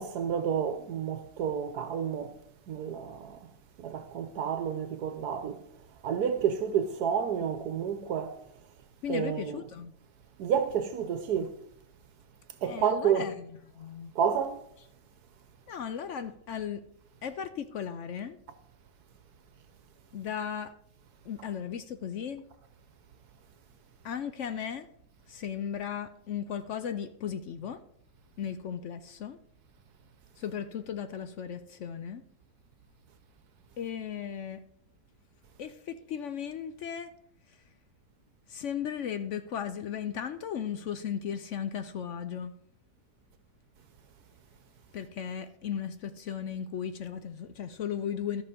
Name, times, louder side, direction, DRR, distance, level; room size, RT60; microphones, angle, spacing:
voice 1, 0.0-2.4 2.7-3.5 3.8-5.6 6.0-8.4 9.1-9.6 10.4-11.5 12.6-13.3 14.1-14.6, right 8 dB, 70° right, 1.2 m, -30 dB
voice 2, 9.0-9.9 12.6-14.1 15.7-16.8 17.2-18.4 20.1-20.7 21.2-22.4 24.0-24.9 25.3-27.8 28.4-29.4 30.4-32.2 33.8-34.6 35.6-37.1 38.5-42.5 44.9-48.4, left 8 dB, 65° left, 0.7 m, -36 dB
13.5 x 6.1 x 5.0 m
omnidirectional pair, 1.8 m